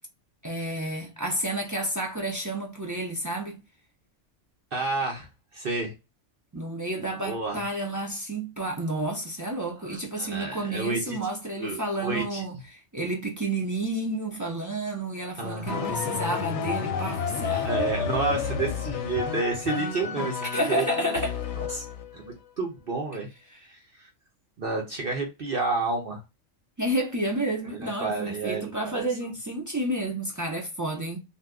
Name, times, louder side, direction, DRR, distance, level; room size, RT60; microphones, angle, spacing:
voice 1, 0.4-3.6 6.5-17.9 20.5-21.4 23.5-23.6 26.8-31.2, right 1 dB, 30° right, 0.3 m, -30 dB
voice 2, 4.7-5.3 5.5-5.9 7.2-7.6 9.8-11.2 11.6-12.4 15.4-16.0 17.6-21.2 21.6-21.8 22.1-23.3 23.7-24.1 24.6-26.2 27.8-29.1, right 3 dB, 50° right, 0.9 m, -30 dB
sound 1, 15.7-22.1, left 7 dB, 65° left, 0.8 m, -30 dB
2.7 x 2.2 x 3.4 m
omnidirectional pair, 1.3 m